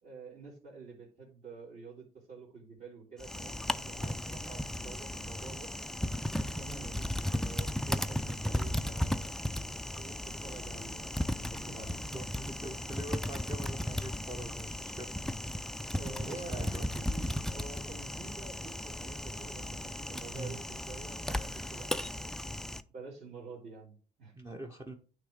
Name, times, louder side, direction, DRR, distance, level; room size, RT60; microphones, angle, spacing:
voice 1, 0.0-5.7 6.3-9.3 9.9-12.0 15.9-22.3 22.9-24.3, right 4 dB, 45° right, -8 dB, 2.9 m, -49 dB
Typing, 3.2-22.8, left 1 dB, 5° left, 0.4 m, -36 dB
voice 2, 12.1-15.1 16.3-16.9 20.3-20.6 24.3-24.9, right 1 dB, 15° right, 2 dB, 0.9 m, -43 dB
9.6 x 3.2 x 4.9 m, 0.39 s
cardioid pair, 110°, 17 cm